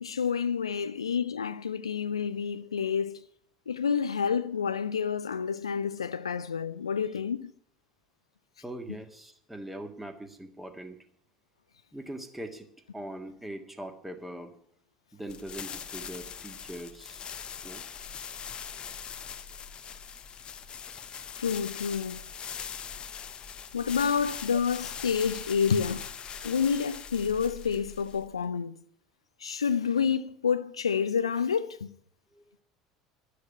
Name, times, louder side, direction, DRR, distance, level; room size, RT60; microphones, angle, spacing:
voice 1, 0.0-3.2 3.7-7.5 21.4-22.2 23.7-26.1 26.4-28.8 29.4-31.9, left 6 dB, 80° left, 0.4 m, -29 dB
voice 2, 8.6-11.0 11.9-12.7 12.9-14.5 15.1-17.3 17.6-17.8 26.4-26.7 32.3-32.4, right 1 dB, 5° right, 1.7 m, -41 dB
sound 1, 15.3-28.4, left 7 dB, 35° left, 0.7 m, -41 dB
12.5 x 6.6 x 9.5 m
figure-of-eight pair, 70°, 3 cm